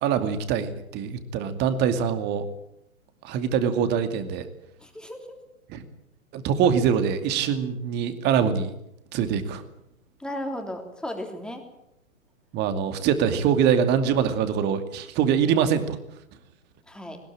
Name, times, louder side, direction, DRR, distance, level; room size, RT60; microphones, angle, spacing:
voice 1, 0.0-2.4 3.2-4.5 5.7-5.8 6.3-8.7 9.1-9.6 12.5-16.0, right 7 dB, 25° right, 9 dB, 2.4 m, -24 dB
voice 2, 4.8-5.4 10.2-11.6 16.9-17.2, left 1 dB, ahead, 3 dB, 3.3 m, -35 dB
21.0 x 19.5 x 8.8 m, 0.80 s
figure-of-eight pair, 115°, 41 cm